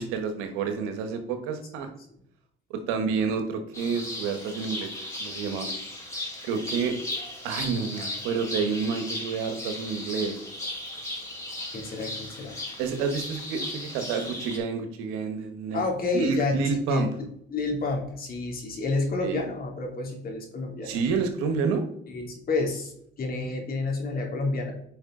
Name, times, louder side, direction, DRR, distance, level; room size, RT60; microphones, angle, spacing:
voice 1, 0.0-1.9 2.7-5.7 6.4-7.0 7.4-10.3 12.8-15.8 16.1-17.1 19.2-19.4 20.8-21.8, right 5 dB, 85° right, 6 dB, 1.4 m, -29 dB
sound 1, 3.7-14.6, left 1 dB, 15° left, 3.5 m, -36 dB
voice 2, 11.7-12.6 15.7-16.5 16.9-17.1 17.5-21.0 22.1-24.7, left 3 dB, 45° left, 0 dB, 2.8 m, -29 dB
9.5 x 5.1 x 3.8 m, 0.71 s
supercardioid pair, 90°, 21 cm